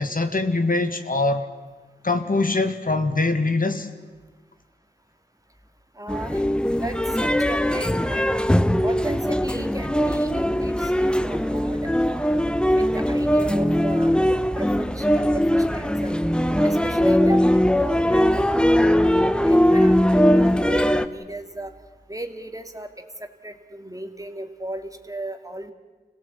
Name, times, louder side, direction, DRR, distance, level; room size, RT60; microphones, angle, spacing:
voice 1, 0.0-1.4 2.0-3.9, left 3 dB, 55° left, 8 dB, 1.7 m, -23 dB
voice 2, 6.0-6.5 6.8-8.3 8.8-12.4 12.7-14.1 14.6-16.2 16.6-19.1 19.5-21.7 22.1-25.7, right 1 dB, 20° right, 6 dB, 2.1 m, -35 dB
sound 1, 6.1-21.1, equal, 5° left, 1.0 m, -20 dB
25.5 x 17.5 x 8.3 m, 1.3 s
cardioid pair, 40°, 17 cm